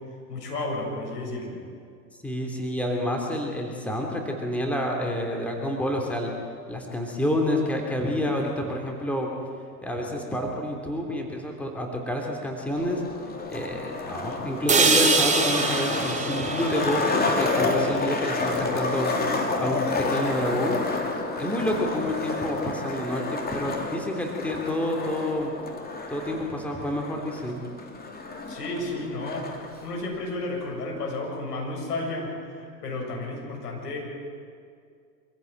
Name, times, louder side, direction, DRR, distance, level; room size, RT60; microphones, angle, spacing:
voice 1, 0.3-1.6 28.5-29.5 29.8-34.0, left 2 dB, 70° left, 0 dB, 7.5 m, -32 dB
voice 2, 2.2-6.3 6.7-9.3 9.8-13.0 13.5-19.2 19.6-20.8 21.3-25.5 26.1-27.6, left 1 dB, 5° left, 1 dB, 3.2 m, -28 dB
Skateboard, 12.7-29.7, left 3 dB, 20° left, 2.9 m, -30 dB
sound 1, 14.7-18.7, right 4 dB, 15° right, 2.3 m, -25 dB
25.5 x 15.5 x 8.9 m, 2.3 s
figure-of-eight pair, 90°, 49 cm